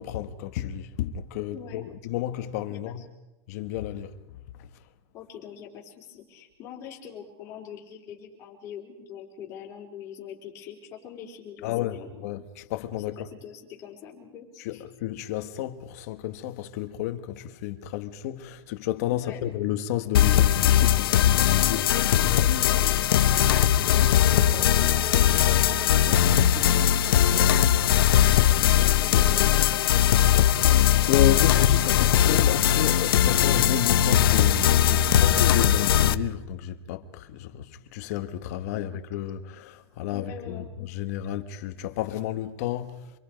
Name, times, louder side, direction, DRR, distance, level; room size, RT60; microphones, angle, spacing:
voice 1, 0.0-3.0 3.5-4.1 11.6-13.2 14.6-22.2 31.0-43.2, left 12 dB, 35° left, 1.4 m, -31 dB
voice 2, 1.5-1.8 2.7-3.1 5.1-12.1 13.1-14.8 19.1-19.4 22.2-23.0 23.8-27.5 28.5-30.1 34.9-35.4 40.1-40.7, left 8 dB, 20° left, 4.3 m, -42 dB
sound 1, 20.1-36.1, left 10 dB, 60° left, 1.0 m, -20 dB
27.5 x 23.0 x 5.2 m
supercardioid pair, 180°, 14 cm